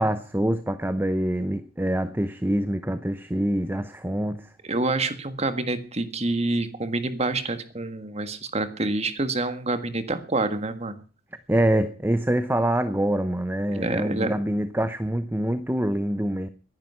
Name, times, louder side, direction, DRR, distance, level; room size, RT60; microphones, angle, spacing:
voice 1, 0.0-4.5 11.5-16.5, right 1 dB, 10° right, 0.8 m, -25 dB
voice 2, 4.6-10.9 13.7-14.3, right 2 dB, 35° right, 1.7 m, -27 dB
19.5 x 11.0 x 5.7 m
head